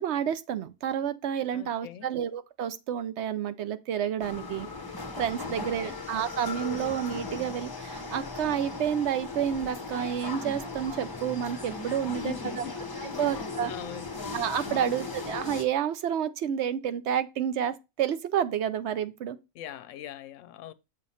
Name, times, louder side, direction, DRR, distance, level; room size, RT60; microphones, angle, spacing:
voice 1, 0.0-4.7 5.2-12.6 13.2-13.7 14.3-19.4, right 9 dB, 60° right, 0.8 m, -30 dB
voice 2, 1.5-2.1 5.4-6.0 12.1-12.8 13.1-14.2 14.6-15.0 19.5-20.7, left 11 dB, 70° left, 0.9 m, -42 dB
sound 1, 4.2-15.6, left 3 dB, 20° left, 0.7 m, -37 dB
7.4 x 3.1 x 5.5 m
omnidirectional pair, 1.5 m